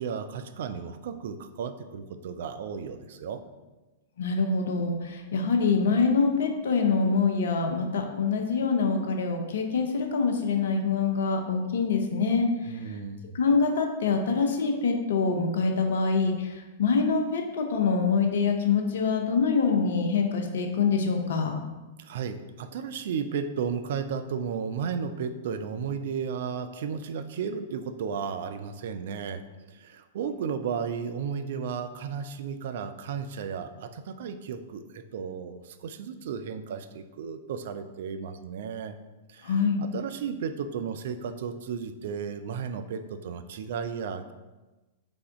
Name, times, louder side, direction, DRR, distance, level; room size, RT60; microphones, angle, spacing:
voice 1, 0.0-3.4 12.6-13.3 22.0-29.4 29.7-39.0 39.3-44.3, right 6 dB, 55° right, 9 dB, 0.3 m, -34 dB
voice 2, 4.2-12.9 13.3-21.5 39.4-39.8, left 5 dB, 60° left, 3 dB, 0.6 m, -25 dB
3.4 x 3.4 x 3.7 m, 1.1 s
figure-of-eight pair, 100°, 0 cm